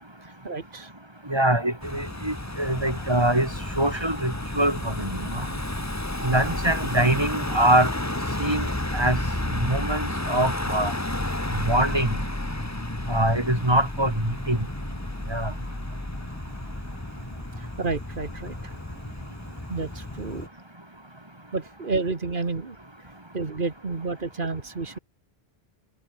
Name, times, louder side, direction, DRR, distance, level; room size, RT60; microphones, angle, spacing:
voice 1, 0.2-0.9 17.6-18.7 19.7-20.5 21.5-22.8 23.3-25.0, right 3 dB, 55° right, 2.1 m, -30 dB
voice 2, 1.3-3.5 3.8-5.5 6.2-7.9 8.4-9.2 9.6-10.9 11.6-12.2 13.1-14.6 15.3-15.5, right 1 dB, 25° right, 3.3 m, -24 dB
Car passing by / Engine, 1.8-20.5, left 1 dB, 15° left, 1.8 m, -31 dB
omnidirectional pair, 1.1 m